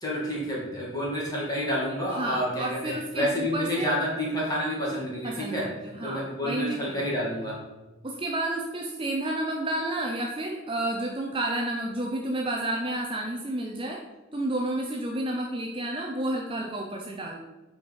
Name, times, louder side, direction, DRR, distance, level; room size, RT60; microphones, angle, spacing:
voice 1, 0.0-5.7 6.0-7.6, equal, 20° left, -5 dB, 2.3 m, -29 dB
voice 2, 2.1-3.9 5.2-7.2 8.0-14.0 14.3-17.4, right 1 dB, 25° right, 0 dB, 0.6 m, -31 dB
7.8 x 5.1 x 4.7 m, 1.1 s
head